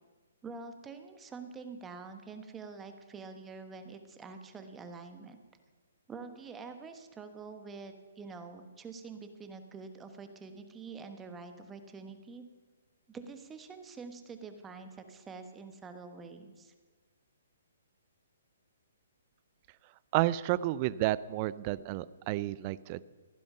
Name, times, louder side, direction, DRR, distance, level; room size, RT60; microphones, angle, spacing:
voice 1, 0.4-5.4 6.1-12.4 13.1-16.7, right 4 dB, 15° right, 7 dB, 1.2 m, -46 dB
voice 2, 20.1-23.0, right 16 dB, 35° right, 18 dB, 0.4 m, -31 dB
15.0 x 10.5 x 5.6 m, 1.4 s
hypercardioid pair, 135°, 0 cm